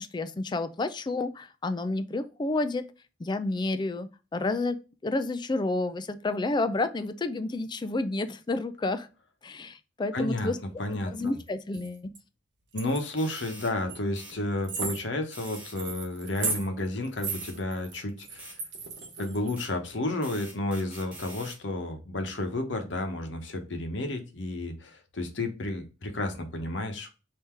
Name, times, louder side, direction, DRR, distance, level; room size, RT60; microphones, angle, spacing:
voice 1, 0.0-2.9 3.2-9.1 9.4-10.6 11.1-12.1, left 2 dB, 25° left, 0.4 m, -30 dB
voice 2, 10.1-10.5 10.8-11.3 12.7-18.5 19.2-27.1, left 1 dB, 75° left, 1.0 m, -32 dB
sound 1, 11.2-11.4 11.7-12.2 12.7-13.4 13.9-14.0 14.3-14.4 14.6-19.6, right 4 dB, 70° right, 1.1 m, -36 dB
sound 2, 13.2-13.7 14.2-14.4 15.3-15.8 16.4-16.6 17.3-17.6 18.4-18.6 19.6-19.7 20.2-21.6, right 1 dB, 5° right, 1.2 m, -45 dB
3.7 x 2.8 x 4.3 m
head